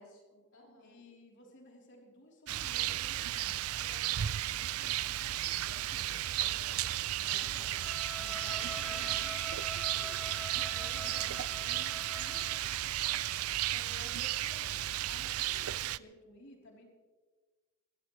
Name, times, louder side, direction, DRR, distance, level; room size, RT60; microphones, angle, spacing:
voice 1, 0.0-1.0 6.1-7.1, left 2 dB, 80° left, -3 dB, 6.1 m, -57 dB
voice 2, 0.8-6.1 7.2-16.9, left 1 dB, 55° left, -1 dB, 3.5 m, -55 dB
Rain, 2.5-16.0, right 13 dB, 85° right, 0.4 m, -34 dB
Bowed string instrument, 7.8-12.7, equal, ahead, 0.6 m, -45 dB
23.0 x 16.0 x 3.2 m, 1.3 s
head